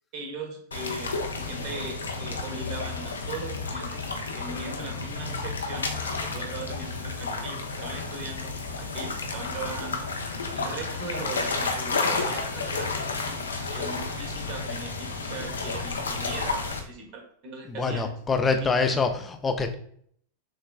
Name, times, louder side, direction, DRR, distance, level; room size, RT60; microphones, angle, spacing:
voice 1, 0.0-4.1 4.4-10.1 10.5-18.1 18.5-19.0, right 3 dB, 40° right, 2 dB, 1.4 m, -39 dB
sound 1, 0.7-16.8, left 3 dB, 70° left, 0.7 m, -31 dB
voice 2, 17.7-19.7, left 4 dB, 15° left, 6 dB, 0.6 m, -25 dB
6.6 x 3.2 x 2.4 m, 0.63 s
figure-of-eight pair, 90°, 0 cm